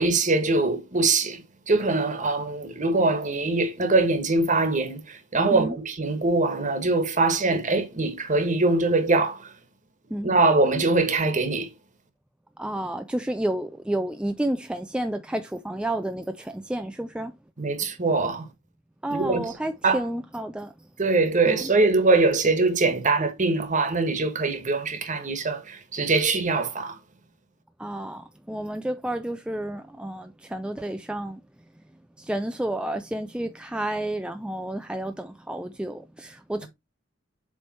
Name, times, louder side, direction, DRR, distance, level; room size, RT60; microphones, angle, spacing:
voice 1, 0.0-9.5 10.2-11.7 17.6-18.5 19.1-19.5 19.8-20.0 21.0-27.0, right 3 dB, 40° right, 1.3 m, -23 dB
voice 2, 12.6-17.3 19.0-20.7 21.5-21.7 27.8-31.4 32.2-36.7, right 1 dB, 5° right, 0.3 m, -30 dB
7.5 x 3.3 x 4.2 m
head